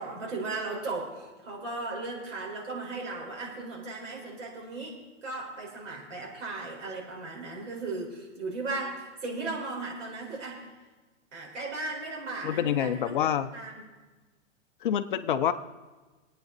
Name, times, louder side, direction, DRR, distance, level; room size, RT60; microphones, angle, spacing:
voice 1, 0.0-10.7 11.3-13.2 13.5-13.9, right 3 dB, 65° right, -2 dB, 4.7 m, -36 dB
voice 2, 12.4-13.5 14.8-15.5, left 9 dB, 40° left, 11 dB, 0.5 m, -27 dB
23.0 x 9.1 x 4.0 m, 1.2 s
hypercardioid pair, 160°, 39 cm